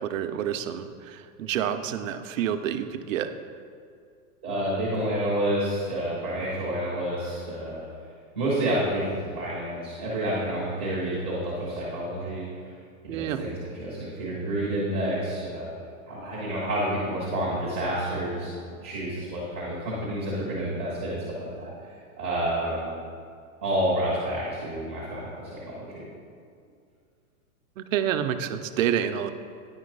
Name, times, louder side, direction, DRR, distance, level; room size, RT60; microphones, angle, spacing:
voice 1, 0.0-3.3 13.1-13.4 27.8-29.3, right 9 dB, 60° right, 9 dB, 0.6 m, -28 dB
voice 2, 4.4-7.8 8.3-12.4 13.0-15.7 16.1-18.5 18.8-21.7 22.2-22.9 23.6-26.0, right 1 dB, 10° right, -16 dB, 0.4 m, -29 dB
9.8 x 3.9 x 5.2 m, 2.3 s
supercardioid pair, 175°, 44 cm